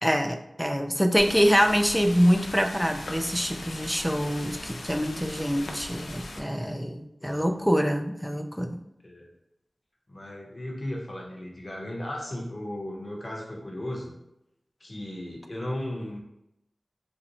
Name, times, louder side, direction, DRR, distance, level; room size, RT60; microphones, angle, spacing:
voice 1, 0.0-8.8, equal, ahead, 5 dB, 0.3 m, -25 dB
sound 1, 1.2-6.4, left 2 dB, 85° left, 0.3 m, -39 dB
voice 2, 7.2-7.7 9.0-9.3 10.1-14.1 14.8-16.2, left 1 dB, 45° left, -1 dB, 0.7 m, -36 dB
2.5 x 2.1 x 2.8 m, 0.84 s
wide cardioid pair, 50°, 0 cm